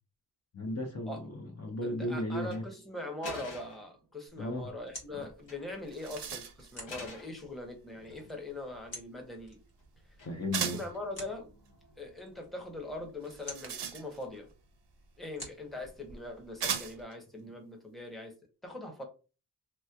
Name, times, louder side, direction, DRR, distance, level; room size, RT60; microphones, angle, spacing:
voice 1, 0.5-2.6 4.4-4.7 5.1-5.3 10.2-10.8, left 1 dB, 35° left, 1 dB, 0.7 m, -35 dB
voice 2, 1.8-9.6 10.6-11.5 12.0-14.5 15.2-18.3 18.6-19.0, left 1 dB, ahead, 2 dB, 0.8 m, -42 dB
sound 1, 2.4-2.6 3.2-3.9 5.2-5.7 6.0-6.2 6.9-7.4 7.9-8.5 10.2-10.6, left 2 dB, 90° left, 1.4 m, -46 dB
sound 2, 4.3-17.0, left 1 dB, 55° left, 1.5 m, -52 dB
sound 3, 5.4-5.5 5.7-6.8 10.5-11.0 13.2-14.4 15.5-15.6 16.6-17.1, right 7 dB, 70° right, 0.6 m, -37 dB
3.2 x 3.0 x 2.2 m, 0.32 s
wide cardioid pair, 130°, 43 cm